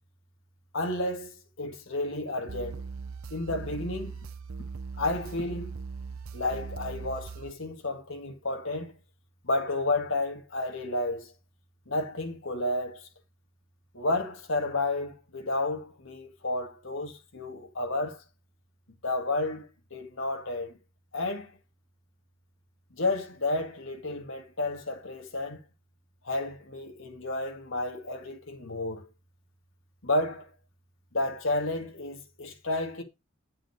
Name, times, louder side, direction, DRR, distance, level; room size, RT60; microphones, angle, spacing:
voice 1, 0.7-2.8 3.3-4.3 5.0-5.7 6.3-8.9 9.4-11.3 11.9-13.1 13.9-18.2 19.0-20.7 21.1-21.5 22.9-25.6 26.2-29.1 30.0-30.5 31.1-33.0, left 2 dB, 65° left, 2.0 m, -31 dB
sound 1, 2.5-7.5, right 5 dB, 75° right, 0.7 m, -39 dB
8.6 x 5.9 x 4.7 m
head